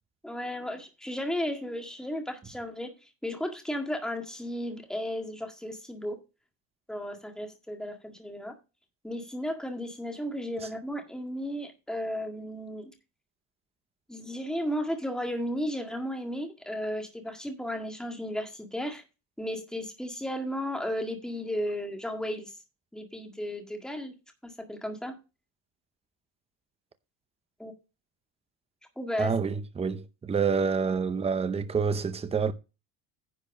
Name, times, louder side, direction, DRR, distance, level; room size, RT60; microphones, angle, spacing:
voice 1, 0.2-2.9 3.2-6.2 6.9-8.5 9.0-12.9 14.1-19.0 19.4-22.5 22.9-24.1 24.4-25.1 27.6-27.7 28.9-29.3, equal, ahead, 1.8 m, -34 dB
voice 2, 29.2-32.5, right 5 dB, 15° right, 0.6 m, -28 dB
10.5 x 4.5 x 6.1 m
cardioid pair, 155°, 46 cm